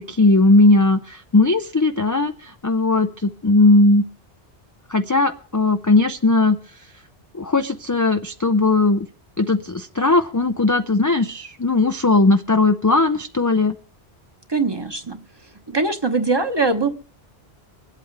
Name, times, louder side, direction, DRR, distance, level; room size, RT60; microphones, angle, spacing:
voice 1, 0.0-4.0 4.9-6.6 7.3-9.1 9.4-13.8, left 2 dB, 30° left, 7 dB, 0.3 m, -18 dB
voice 2, 14.5-15.2 15.7-16.9, right 3 dB, 25° right, 6 dB, 1.1 m, -21 dB
24.5 x 8.3 x 3.3 m, 0.43 s
omnidirectional pair, 1.1 m